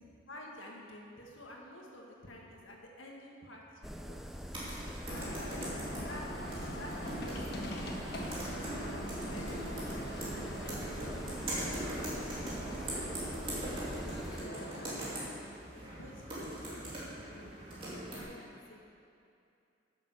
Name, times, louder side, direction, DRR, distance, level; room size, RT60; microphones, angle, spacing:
voice 1, 0.3-5.6 5.9-6.3 6.6-7.9 8.2-11.4 11.9-13.1 13.4-15.5 15.7-17.5 17.9-18.8, left 1 dB, 90° left, -1 dB, 1.8 m, -51 dB
sound 1, 3.8-14.4, equal, ahead, 0.4 m, -44 dB
sound 2, 4.5-18.2, right 1 dB, 25° right, 2.6 m, -42 dB
sound 3, 5.1-15.3, equal, 55° left, 1.3 m, -43 dB
10.5 x 7.3 x 6.6 m, 2.6 s
head